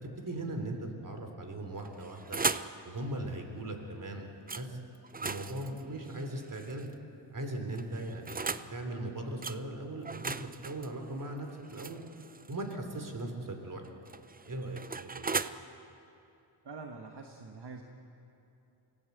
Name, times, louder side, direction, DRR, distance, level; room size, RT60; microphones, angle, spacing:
voice 1, 0.0-2.4 2.8-4.3 4.5-4.8 5.2-6.8 7.3-10.4 10.6-12.0 12.5-13.8 14.5-15.3, right 1 dB, 45° right, 4 dB, 3.2 m, -39 dB
sound 1, 1.8-2.8 4.5-4.7 5.0-6.9 7.7-8.7 9.4-9.6 10.0-12.7 13.9-15.5, right 4 dB, 20° right, 0.5 m, -37 dB
voice 2, 16.6-17.8, right 4 dB, 60° right, 3 dB, 1.5 m, -45 dB
25.0 x 16.5 x 8.0 m, 2.8 s
wide cardioid pair, 90°, 45 cm